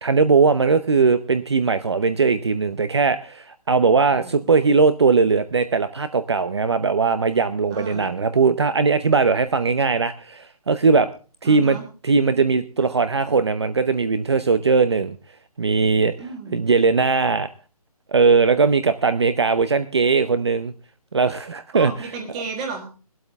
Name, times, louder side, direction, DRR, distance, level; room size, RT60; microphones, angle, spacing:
voice 1, 0.0-11.1 11.4-11.8 12.0-15.2 15.6-16.1 16.5-17.5 18.1-20.7 21.1-22.1, right 4 dB, 45° right, 12 dB, 0.8 m, -19 dB
voice 2, 4.1-4.4 7.7-8.1 11.4-11.8 16.2-16.6 21.7-22.9, right 4 dB, 10° right, 5 dB, 1.5 m, -33 dB
18.0 x 12.5 x 3.5 m, 0.36 s
hypercardioid pair, 180°, 20 cm